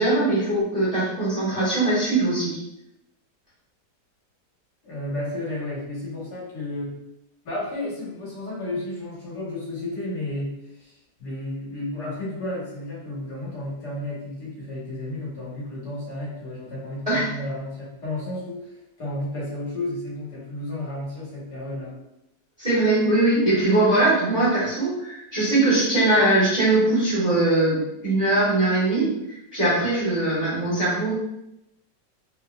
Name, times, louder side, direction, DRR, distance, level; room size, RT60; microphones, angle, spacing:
voice 1, 0.0-2.6 17.1-17.2 22.6-31.1, right 2 dB, 25° right, -11 dB, 1.3 m, -21 dB
voice 2, 4.8-7.0 7.4-21.9, left 1 dB, 65° left, -6 dB, 1.7 m, -32 dB
3.7 x 2.8 x 2.3 m, 0.85 s
omnidirectional pair, 2.0 m